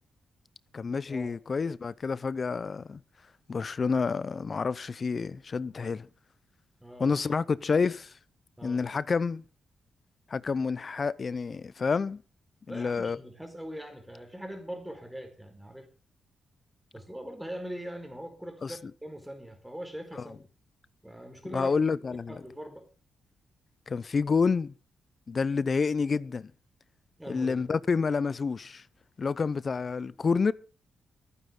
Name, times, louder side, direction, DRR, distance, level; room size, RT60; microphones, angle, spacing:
voice 1, 0.7-3.0 3.5-6.1 7.0-8.1 8.6-9.4 10.3-12.2 12.7-13.2 18.6-18.7 20.2-20.3 21.5-22.4 23.9-24.7 25.3-26.5 27.3-28.8 29.2-30.5, left 5 dB, 45° left, 0.7 m, -28 dB
voice 2, 6.8-7.2 8.6-8.8 12.7-15.9 16.9-20.4 21.0-21.7 22.3-22.8 27.2-27.6, equal, 5° right, 4.8 m, -41 dB
23.5 x 9.5 x 3.8 m
cardioid pair, 80°, 0 cm